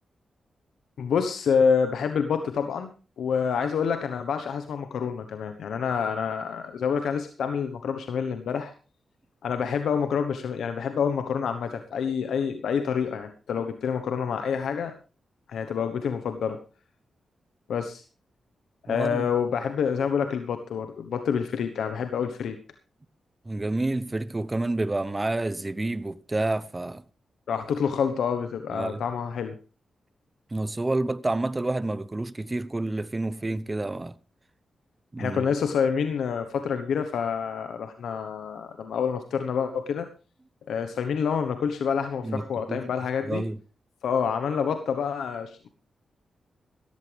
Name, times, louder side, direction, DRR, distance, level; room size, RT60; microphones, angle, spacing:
voice 1, 1.0-2.9 3.2-8.7 9.4-14.9 15.5-16.6 17.7-18.0 18.8-22.6 27.5-29.5 35.2-40.1 40.7-43.4 44.0-45.7, left 6 dB, 85° left, 1.1 m, -27 dB
voice 2, 18.9-19.3 23.5-27.0 28.7-29.0 30.5-34.1 35.1-35.5 42.2-42.9 43.2-43.6, right 2 dB, 25° right, 0.8 m, -29 dB
15.0 x 14.0 x 3.4 m
cardioid pair, 65°, 0 cm